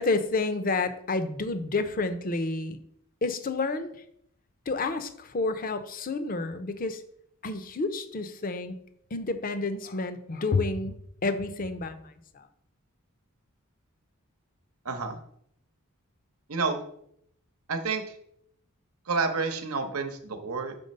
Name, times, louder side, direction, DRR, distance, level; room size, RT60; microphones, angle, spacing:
voice 1, 0.0-2.8 3.2-3.9 4.7-7.0 7.4-8.7 9.1-12.4, left 3 dB, 40° left, 10 dB, 0.6 m, -30 dB
voice 2, 14.8-15.2 16.5-16.8 17.7-18.2 19.1-20.8, right 4 dB, 85° right, 6 dB, 0.9 m, -29 dB
5.3 x 4.3 x 5.3 m, 0.70 s
head